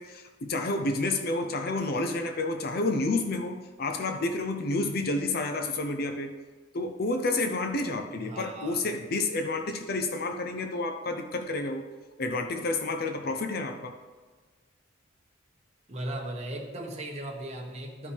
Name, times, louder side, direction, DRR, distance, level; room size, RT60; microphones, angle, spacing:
voice 1, 0.0-6.3 6.7-11.9 12.2-13.9, left 2 dB, 50° left, 5 dB, 0.6 m, -30 dB
voice 2, 8.1-8.8 15.9-18.1, right 1 dB, 35° right, 0 dB, 1.3 m, -37 dB
12.5 x 5.3 x 3.4 m, 1.4 s
head